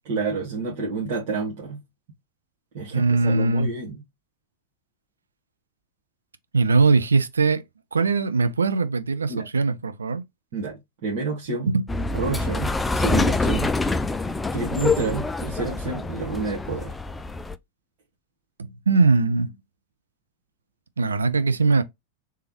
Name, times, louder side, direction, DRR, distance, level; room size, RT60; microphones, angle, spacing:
voice 1, 0.0-1.8 2.7-4.0 9.3-9.4 10.5-11.7 12.1-13.7 14.5-16.9, right 4 dB, 50° right, 1.5 m, -29 dB
voice 2, 2.9-3.7 6.5-7.6 7.9-10.2 11.7-11.8 18.6-19.6 21.0-21.8, right 4 dB, 75° right, 0.5 m, -21 dB
sound 1, 11.9-17.5, left 3 dB, 10° left, 0.3 m, -25 dB
3.4 x 3.4 x 2.8 m
figure-of-eight pair, 90°, 0 cm